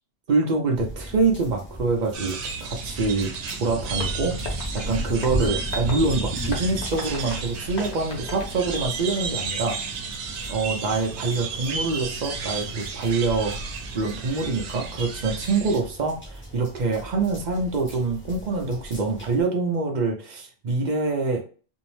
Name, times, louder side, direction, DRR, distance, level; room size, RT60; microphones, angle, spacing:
voice 1, 0.3-3.3 3.6-4.4 4.7-9.8 10.5-13.6 13.9-21.4, right 3 dB, 50° right, 2 dB, 0.6 m, -25 dB
sound 1, 0.7-19.4, equal, 15° left, 0.6 m, -37 dB
sound 2, 2.1-15.8, right 5 dB, 90° right, 0.9 m, -33 dB
Tap, 3.9-9.4, left 4 dB, 70° left, 1.1 m, -40 dB
2.6 x 2.0 x 3.0 m, 0.39 s
omnidirectional pair, 1.1 m